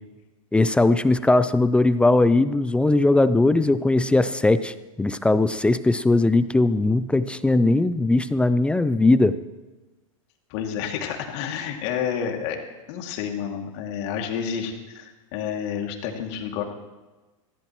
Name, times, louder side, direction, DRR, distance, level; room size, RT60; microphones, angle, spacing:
voice 1, 0.5-9.4, left 2 dB, 5° left, 13 dB, 0.4 m, -19 dB
voice 2, 10.5-12.6 12.9-16.6, left 8 dB, 60° left, 2 dB, 2.4 m, -29 dB
20.5 x 15.0 x 3.1 m, 1.2 s
hypercardioid pair, 120°, 17 cm